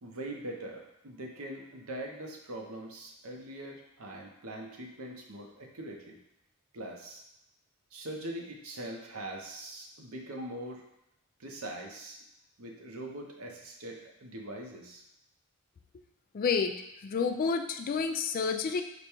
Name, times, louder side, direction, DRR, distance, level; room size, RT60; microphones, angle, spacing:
voice 1, 0.0-6.2 6.7-7.2 7.9-10.9 11.4-12.2 12.6-15.0, right 1 dB, 80° right, 1 dB, 0.8 m, -42 dB
voice 2, 16.3-16.8 17.0-18.8, left 5 dB, 40° left, 7 dB, 0.3 m, -29 dB
5.1 x 2.2 x 4.4 m, 0.84 s
head